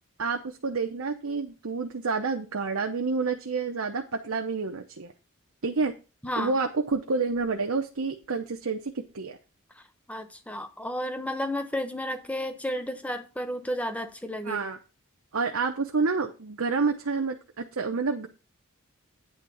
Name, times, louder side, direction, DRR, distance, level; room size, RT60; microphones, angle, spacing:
voice 1, 0.2-5.1 5.6-5.9 6.4-9.4 14.4-14.8 15.3-18.3, right 4 dB, 80° right, 0.8 m, -29 dB
voice 2, 6.2-6.6 9.8-9.9 10.1-14.6, equal, 5° left, 0.9 m, -32 dB
9.4 x 3.7 x 6.9 m
head